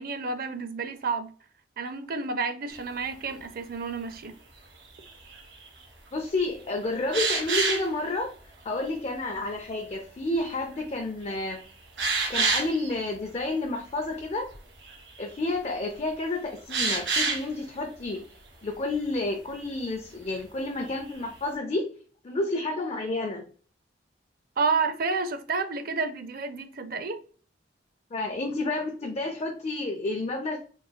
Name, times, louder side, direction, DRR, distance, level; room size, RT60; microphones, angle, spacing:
voice 1, 0.0-1.3 1.8-4.4 24.6-27.2, right 4 dB, 55° right, 0.5 m, -30 dB
sound 1, 2.7-2.8 5.0-5.7 7.1-7.9 10.8-10.9 11.3-11.4 12.0-12.9 14.5-14.6 14.8-15.2 16.7-17.4 20.9-21.1, right 4 dB, 85° right, 2.1 m, -27 dB
voice 2, 6.1-8.3 8.6-11.6 12.3-14.5 15.2-18.2 18.6-21.9 22.2-23.4 28.1-30.6, left 2 dB, 35° left, 0.6 m, -30 dB
4.3 x 4.1 x 2.3 m
head